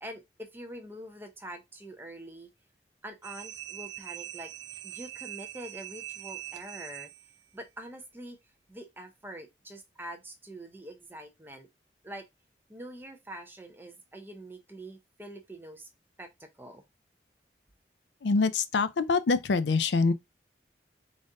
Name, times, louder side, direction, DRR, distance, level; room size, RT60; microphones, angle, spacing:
voice 1, 0.0-2.5 3.0-4.5 4.8-7.1 7.5-8.4 8.7-11.7 12.0-12.3 12.7-15.9 16.2-16.8, right 1 dB, 10° right, 0.6 m, -45 dB
sound 1, 3.2-7.5, right 14 dB, 85° right, 0.4 m, -42 dB
voice 2, 18.2-20.1, left 4 dB, 80° left, 0.4 m, -25 dB
4.0 x 2.5 x 3.6 m
head